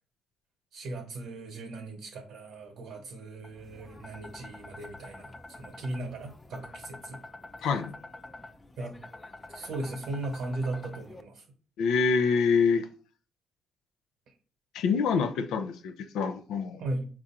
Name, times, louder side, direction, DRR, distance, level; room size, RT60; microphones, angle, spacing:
voice 1, 0.7-7.2 7.6-7.7 8.8-9.0 9.5-11.4 14.3-14.4 16.8-17.1, right 2 dB, 80° right, 3 dB, 0.9 m, -37 dB
sound 1, 3.4-11.2, left 2 dB, 20° left, 0.4 m, -47 dB
voice 2, 7.6-7.9 11.8-12.9 14.7-16.8, left 5 dB, 85° left, 8 dB, 0.4 m, -26 dB
4.6 x 2.5 x 4.2 m, 0.40 s
cardioid pair, 90°, 0 cm